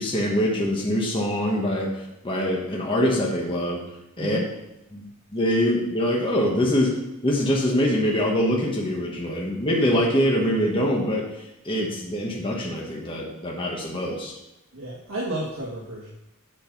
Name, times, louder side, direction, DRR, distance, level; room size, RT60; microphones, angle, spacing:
voice 1, 0.0-3.8 4.2-4.4 4.9-5.0 5.3-6.9 7.2-14.3, equal, 25° left, -2 dB, 1.3 m, -24 dB
voice 2, 4.2-4.5 14.7-16.1, right 1 dB, 75° right, -5 dB, 1.7 m, -32 dB
8.6 x 6.5 x 5.3 m, 0.90 s
head